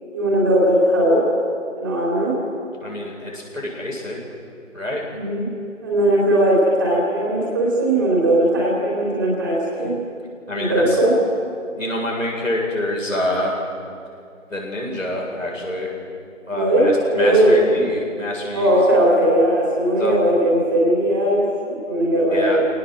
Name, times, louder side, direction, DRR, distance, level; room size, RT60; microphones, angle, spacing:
voice 1, 0.1-1.2 1.8-2.3 5.1-5.5 5.8-9.9 10.5-11.1 16.5-17.5 18.5-22.6, right 1 dB, 15° right, -5 dB, 3.9 m, -18 dB
voice 2, 2.8-4.2 4.7-5.0 10.5-11.0 11.7-13.6 14.5-15.9 16.5-18.8 20.0-20.2 22.3-22.6, left 1 dB, 80° left, -2 dB, 7.9 m, -26 dB
24.5 x 18.5 x 8.0 m, 2.4 s
figure-of-eight pair, 165°, 38 cm